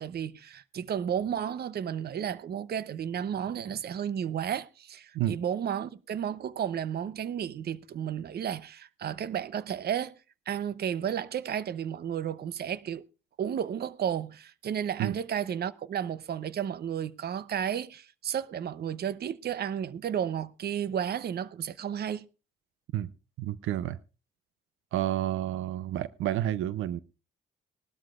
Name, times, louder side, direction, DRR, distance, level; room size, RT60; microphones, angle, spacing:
voice 1, 0.0-10.1 10.5-13.0 13.4-22.2, right 9 dB, 55° right, 0.8 m, -32 dB
voice 2, 23.4-24.0 24.9-27.0, right 12 dB, 85° right, 0.6 m, -30 dB
20.0 x 12.5 x 2.4 m
cardioid pair, 90°, 20 cm